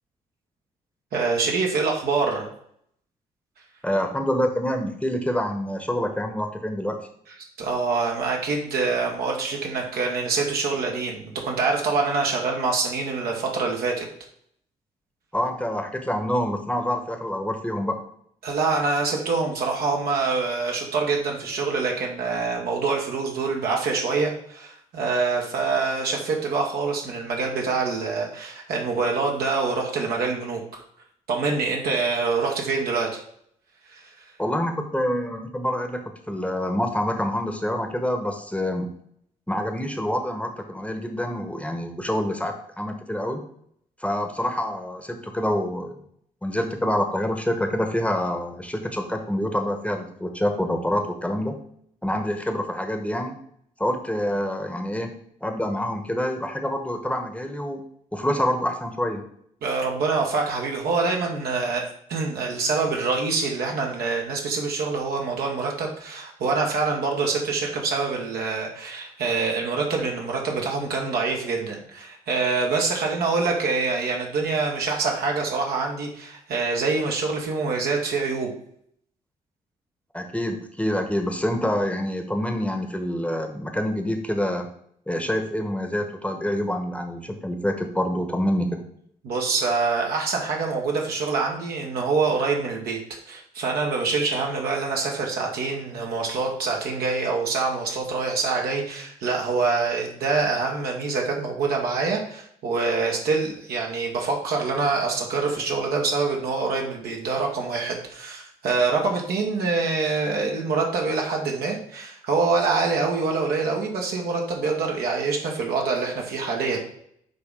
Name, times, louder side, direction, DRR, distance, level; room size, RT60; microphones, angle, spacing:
voice 1, 1.1-2.5 7.6-14.1 18.4-30.8 31.3-33.2 33.9-34.0 59.6-78.5 89.2-93.0 93.3-116.8, right 4 dB, 60° right, 0 dB, 1.4 m, -25 dB
voice 2, 3.8-7.0 15.3-18.0 34.4-38.9 39.5-43.4 44.0-46.0 46.4-51.5 52.0-53.4 53.8-57.8 58.1-59.2 80.1-84.7 85.1-88.8, left 1 dB, 5° left, 4 dB, 1.2 m, -26 dB
9.4 x 3.5 x 3.8 m, 0.68 s
figure-of-eight pair, 40°, 18 cm